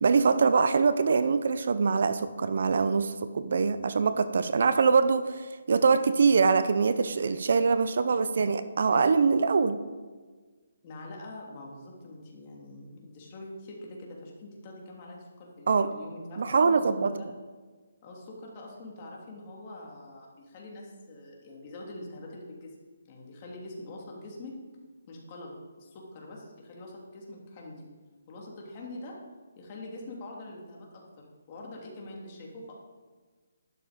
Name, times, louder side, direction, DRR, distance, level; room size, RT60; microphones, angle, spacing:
voice 1, 0.0-9.8 15.7-15.9 16.4-17.1, right 5 dB, 60° right, 12 dB, 0.7 m, -24 dB
voice 2, 10.8-17.3 18.0-22.7 23.1-24.6 25.1-27.9 28.3-29.2 29.5-32.7, left 2 dB, 30° left, -2 dB, 3.1 m, -44 dB
12.0 x 12.0 x 5.2 m, 1.4 s
hypercardioid pair, 160°, 0 cm